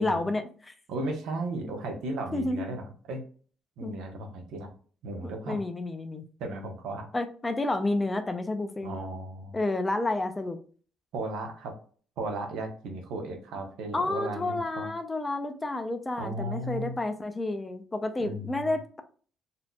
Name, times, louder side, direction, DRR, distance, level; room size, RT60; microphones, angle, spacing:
voice 1, 0.0-0.7 2.3-2.6 3.8-3.9 5.4-6.2 7.1-9.0 9.5-10.6 13.9-19.0, left 2 dB, 15° left, 7 dB, 0.5 m, -30 dB
voice 2, 0.9-3.2 3.8-4.7 5.0-5.6 6.4-7.1 8.8-9.6 11.1-11.7 12.2-14.9 16.2-17.0 18.2-18.7, right 2 dB, 80° right, 3 dB, 1.0 m, -35 dB
4.1 x 2.8 x 2.3 m, 0.42 s
cardioid pair, 115°, 0 cm